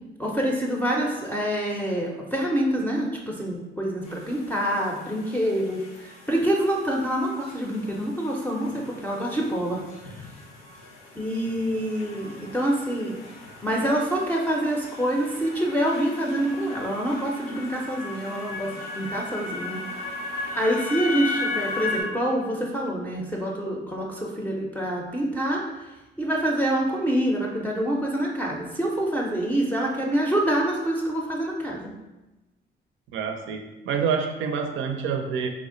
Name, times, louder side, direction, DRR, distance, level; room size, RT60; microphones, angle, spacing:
voice 1, 0.2-10.2 11.2-13.2 13.6-19.8 20.3-25.8 26.2-31.9, right 1 dB, 10° left, -2 dB, 0.5 m, -26 dB
sound 1, 4.0-22.0, left 3 dB, 90° left, 0.7 m, -37 dB
voice 2, 33.1-35.5, right 6 dB, 80° right, 5 dB, 0.5 m, -27 dB
3.4 x 2.0 x 3.7 m, 1.0 s
cardioid pair, 90°, 20 cm